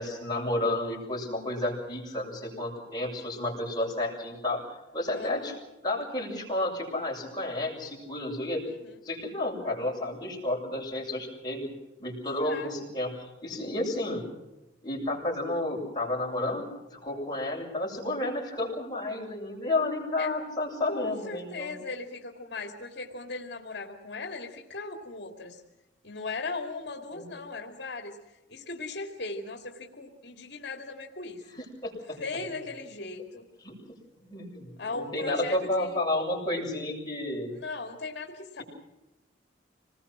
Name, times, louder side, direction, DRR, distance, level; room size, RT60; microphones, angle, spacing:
voice 1, 0.0-5.5 5.8-8.6 9.0-11.7 12.0-14.2 14.8-16.6 16.9-21.8 27.1-27.2 31.8-32.2 33.6-37.6, left 1 dB, 20° left, -2 dB, 7.5 m, -31 dB
voice 2, 5.1-5.6 8.8-9.0 12.4-12.7 20.2-20.3 20.9-25.6 26.0-31.4 32.2-33.4 34.8-36.0 37.5-38.6, left 3 dB, 60° left, 3 dB, 2.5 m, -38 dB
26.5 x 20.5 x 6.2 m, 0.99 s
head